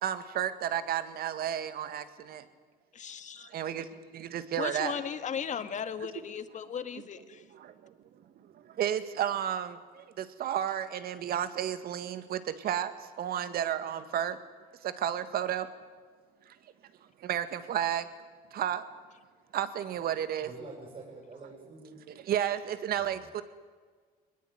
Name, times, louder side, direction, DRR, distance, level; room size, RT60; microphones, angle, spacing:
voice 1, 0.0-2.5 3.4-4.9 7.5-7.9 8.4-14.4 14.8-15.7 16.5-16.6 17.2-18.1 18.5-18.8 19.5-20.5 22.1-23.4, right 10 dB, 65° right, 11 dB, 2.0 m, -32 dB
voice 2, 2.9-3.5 4.6-7.4, left 7 dB, 45° left, 10 dB, 1.8 m, -36 dB
voice 3, 20.4-22.0 22.9-23.2, right 3 dB, 40° right, -1 dB, 7.8 m, -47 dB
23.0 x 20.0 x 9.4 m, 1.5 s
cardioid pair, 110°, 17 cm